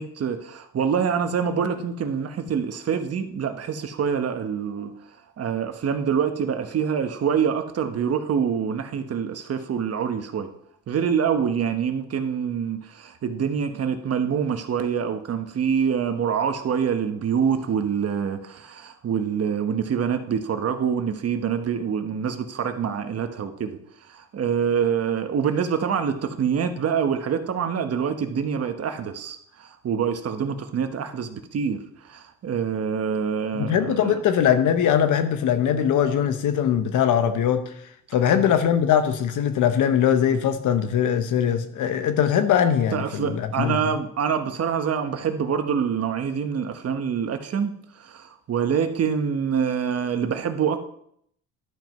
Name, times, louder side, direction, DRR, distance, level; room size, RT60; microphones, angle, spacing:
voice 1, 0.0-10.5 10.9-34.2 42.9-50.8, right 7 dB, 55° right, 7 dB, 1.2 m, -26 dB
voice 2, 33.5-37.7 38.1-43.8, left 9 dB, 80° left, 9 dB, 1.1 m, -21 dB
11.5 x 4.7 x 5.4 m, 0.68 s
cardioid pair, 90°, 30 cm